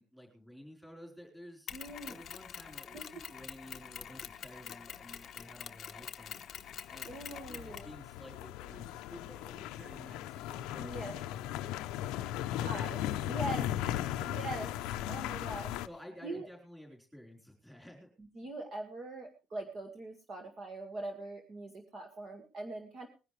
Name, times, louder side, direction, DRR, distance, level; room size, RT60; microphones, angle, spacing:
voice 1, 0.0-1.8 2.0-7.2 7.5-10.9 12.1-14.4 15.8-18.1, equal, ahead, 0 dB, 4.3 m, -52 dB
Mechanisms, 1.7-8.0, left 9 dB, 35° left, 0.9 m, -46 dB
voice 2, 1.7-2.2 2.9-3.0 7.1-7.9 10.8-11.1 12.6-13.7 14.2-14.7 15.1-15.8 16.2-16.5 18.4-23.1, right 2 dB, 30° right, 3 dB, 1.9 m, -42 dB
sound 1, 6.6-15.9, left 13 dB, 85° left, 0.7 m, -37 dB
20.5 x 11.0 x 3.3 m, 0.31 s
cardioid pair, 180°, 0 cm